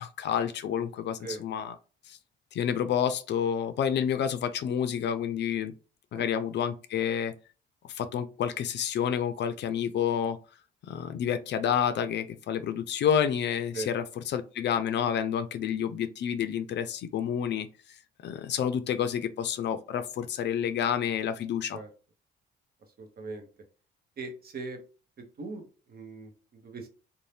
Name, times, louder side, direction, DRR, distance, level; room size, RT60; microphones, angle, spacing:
voice 1, 0.0-1.7 2.1-2.2 2.5-5.7 6.1-7.3 7.9-10.4 10.9-14.0 14.3-17.7 18.2-21.8, left 8 dB, 60° left, 0.4 m, -29 dB
voice 2, 23.0-23.5 24.2-24.8 25.2-26.9, right 3 dB, 50° right, 0.9 m, -40 dB
2.6 x 2.1 x 3.2 m
cardioid pair, 90°, 20 cm